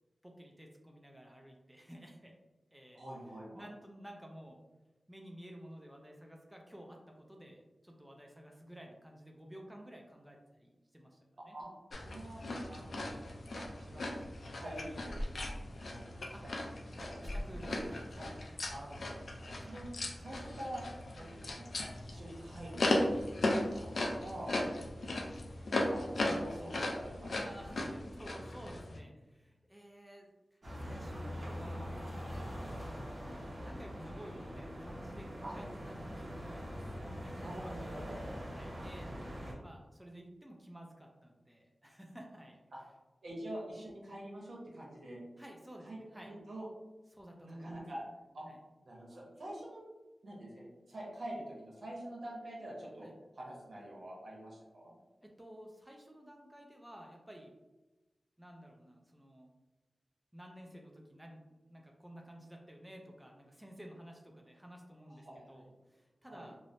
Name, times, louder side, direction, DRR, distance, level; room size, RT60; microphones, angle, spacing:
voice 1, 0.2-2.3 2.7-3.0 3.5-4.6 5.1-11.6 12.7-12.9 16.3-16.4 17.0-17.1 17.4-18.0 18.5-18.6 24.6-24.9 27.3-32.3 33.2-39.1 39.6-42.6 45.4-46.3 47.1-47.8 48.4-48.6 53.0-53.1 55.2-57.5 58.4-59.5 60.3-61.4 61.7-66.6, equal, 10° right, 1 dB, 0.3 m, -53 dB
voice 2, 2.9-3.7 11.4-11.7 12.0-12.4 12.7-13.1 13.5-14.0 14.5-15.2 15.8-16.3 16.9-17.8 18.1-18.3 18.7-19.2 19.6-19.9 20.2-20.8 21.1-21.7 22.1-24.6 25.9-27.4 35.4-35.6 37.3-38.2 42.7-42.8 43.2-45.2 45.8-46.0 46.3-46.7 47.4-48.0 48.3-48.4 48.8-49.8 50.2-53.1 53.3-54.9 65.2-65.7 66.3-66.5, right 1 dB, 80° right, -4 dB, 0.9 m, -46 dB
sound 1, 11.9-29.0, left 1 dB, 70° left, 0.3 m, -37 dB
sound 2, 30.6-39.5, equal, 50° right, 0.9 m, -43 dB
3.0 x 2.0 x 2.5 m, 1.1 s
wide cardioid pair, 80°, 0 cm